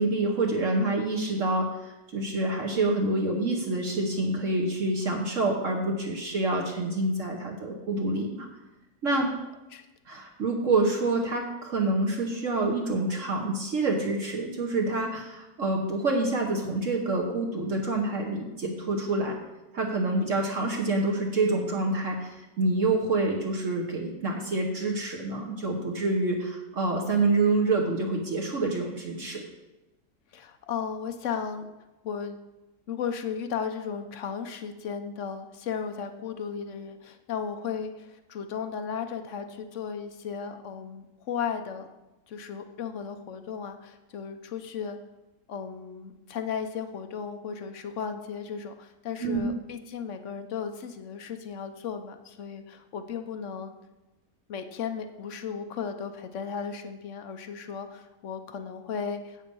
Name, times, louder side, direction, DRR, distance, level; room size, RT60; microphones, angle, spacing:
voice 1, 0.0-8.5 9.0-9.3 10.1-19.4 19.7-29.4 49.2-49.5, right 2 dB, 50° right, 0 dB, 1.4 m, -27 dB
voice 2, 30.3-31.7 32.0-32.4 32.9-41.9 42.3-45.0 45.5-53.7 54.5-59.4, left 7 dB, 60° left, 8 dB, 0.9 m, -35 dB
8.2 x 7.4 x 5.3 m, 1.0 s
omnidirectional pair, 1.8 m